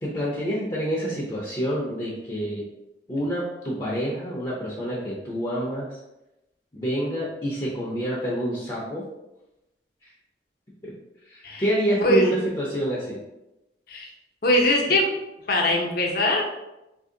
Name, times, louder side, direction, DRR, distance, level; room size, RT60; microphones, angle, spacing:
voice 1, 0.0-2.6 3.1-6.0 6.7-9.0 10.0-10.1 11.3-13.2, equal, 25° left, -5 dB, 0.6 m, -27 dB
voice 2, 12.0-12.3 13.9-14.1 14.4-15.1 15.5-16.4, left 1 dB, 60° left, 0 dB, 0.8 m, -21 dB
2.8 x 2.7 x 3.7 m, 0.95 s
head